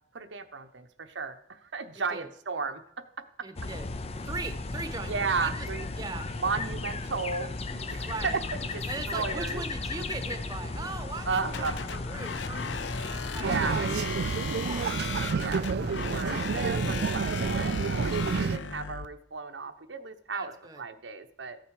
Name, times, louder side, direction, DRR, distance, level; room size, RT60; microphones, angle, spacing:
voice 1, 0.1-2.8 3.2-3.3 5.0-5.9 6.4-8.4 8.7-9.6 11.3-11.8 13.3-13.8 15.4-16.4 16.8-21.6, right 4 dB, 85° right, 6 dB, 1.0 m, -34 dB
voice 2, 3.4-3.9 4.2-5.7 6.0-6.7 8.0-8.4 8.9-15.2 20.3-20.8, right 3 dB, 20° right, 9 dB, 1.0 m, -40 dB
sound 1, 3.6-13.8, left 3 dB, 35° left, 0.6 m, -35 dB
sound 2, 11.5-19.1, left 5 dB, 80° left, 0.7 m, -36 dB
sound 3, 13.4-18.6, right 5 dB, 60° right, 0.3 m, -29 dB
14.5 x 8.7 x 4.8 m, 0.68 s
head